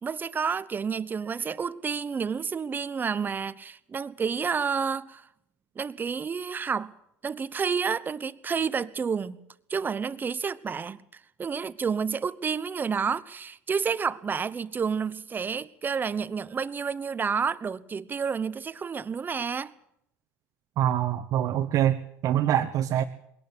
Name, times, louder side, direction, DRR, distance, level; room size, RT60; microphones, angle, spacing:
voice 1, 0.0-5.2 5.8-6.9 7.2-9.4 9.7-11.0 11.4-19.7, right 6 dB, 30° right, 1.0 m, -30 dB
voice 2, 20.8-23.0, right 11 dB, 60° right, 1.3 m, -25 dB
21.5 x 18.0 x 8.1 m
supercardioid pair, 90°, 7 cm